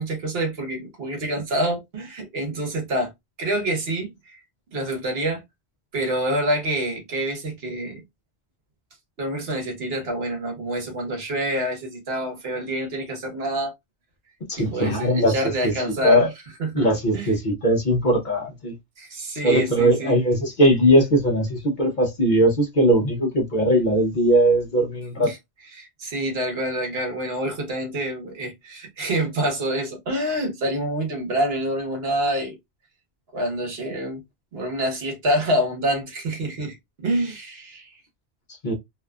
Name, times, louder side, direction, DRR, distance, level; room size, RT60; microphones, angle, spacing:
voice 1, 0.0-3.1 3.4-4.4 4.7-5.4 5.9-8.0 9.2-13.7 14.6-16.3 16.6-16.9 17.1-17.3 19.0-20.2 25.2-25.4 25.7-32.6 33.3-34.2 34.5-37.9, right 1 dB, 70° right, 1.2 m, -27 dB
voice 2, 14.5-16.3 16.7-18.7 19.4-25.3 38.6-38.7, equal, 50° left, 0.8 m, -20 dB
2.7 x 2.3 x 2.2 m
omnidirectional pair, 1.1 m